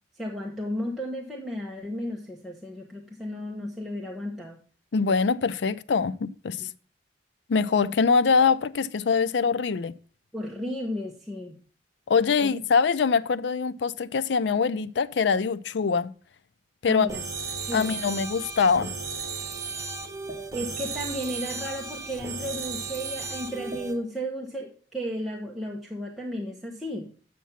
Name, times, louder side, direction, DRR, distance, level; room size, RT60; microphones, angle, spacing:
voice 1, 0.2-4.6 6.6-6.7 10.3-11.5 12.4-12.5 16.9-17.2 17.6-18.0 20.5-27.1, equal, ahead, 1.0 m, -34 dB
voice 2, 4.9-6.6 7.5-9.9 12.1-16.1 16.8-17.1 17.7-18.9, left 5 dB, 70° left, 0.4 m, -23 dB
sound 1, 17.1-23.9, right 4 dB, 20° right, 1.7 m, -35 dB
8.2 x 5.9 x 5.7 m
head